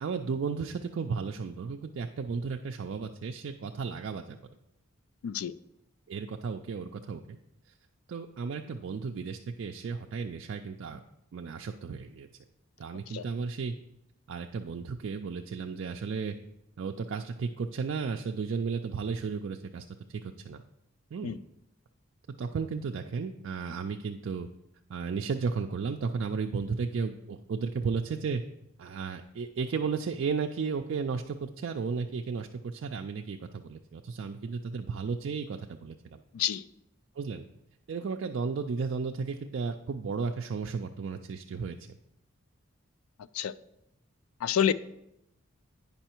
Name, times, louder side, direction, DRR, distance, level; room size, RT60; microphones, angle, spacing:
voice 1, 0.0-4.4 6.1-7.4 8.1-11.0 11.3-12.3 12.8-13.7 14.3-16.4 16.8-20.6 21.1-21.4 22.4-24.5 24.9-28.4 28.8-36.2 37.2-37.4 37.9-42.0, right 5 dB, 60° right, 3 dB, 0.3 m, -34 dB
voice 2, 36.3-36.6 43.3-43.5 44.4-44.7, left 9 dB, 90° left, 16 dB, 0.3 m, -28 dB
8.9 x 5.5 x 4.4 m, 0.84 s
head